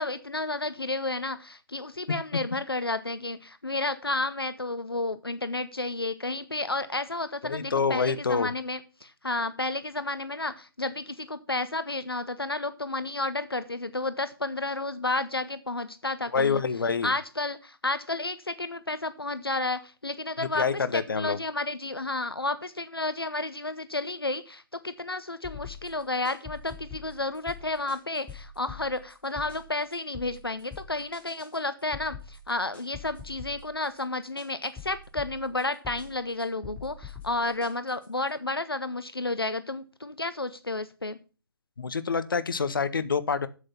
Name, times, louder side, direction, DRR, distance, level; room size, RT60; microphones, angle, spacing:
voice 1, 0.0-16.6 17.0-20.7 20.9-41.2, left 2 dB, 90° left, 13 dB, 0.8 m, -31 dB
voice 2, 7.5-8.5 16.3-17.2 20.4-21.4 41.8-43.5, left 5 dB, 65° left, 15 dB, 1.0 m, -27 dB
sound 1, 25.4-38.3, left 5 dB, 10° left, 3.1 m, -44 dB
8.0 x 7.8 x 5.6 m, 0.35 s
figure-of-eight pair, 130°, 12 cm